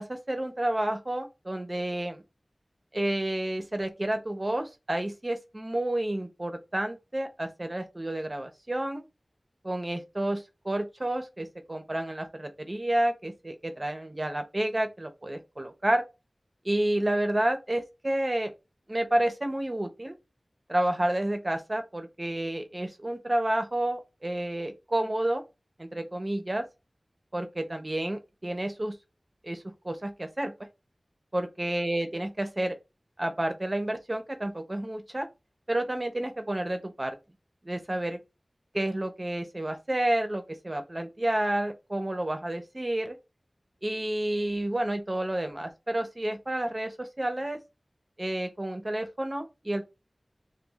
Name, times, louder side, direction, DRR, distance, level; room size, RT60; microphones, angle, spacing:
voice 1, 0.0-2.2 2.9-9.0 9.6-16.0 16.6-18.5 18.9-20.2 20.7-25.4 25.8-26.6 27.3-29.0 29.4-30.5 31.3-32.7 33.2-35.3 35.7-37.2 37.6-38.2 38.7-43.1 43.8-47.6 48.2-49.9, right 1 dB, 35° right, 0.7 m, -30 dB
3.1 x 2.2 x 3.5 m
wide cardioid pair, 60°, 0 cm